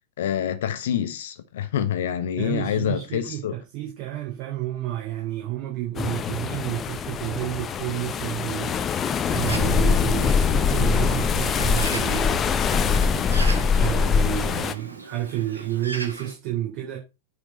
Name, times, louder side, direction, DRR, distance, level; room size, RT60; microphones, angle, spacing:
voice 1, 0.2-3.5, left 10 dB, 60° left, 1.2 m, -26 dB
voice 2, 2.4-17.0, right 14 dB, 45° right, 3.5 m, -31 dB
sound 1, 6.0-14.7, left 6 dB, 25° left, 0.8 m, -23 dB
Bird, 9.5-16.3, right 2 dB, 80° right, 1.6 m, -39 dB
9.6 x 5.0 x 5.4 m
figure-of-eight pair, 90°, 0 cm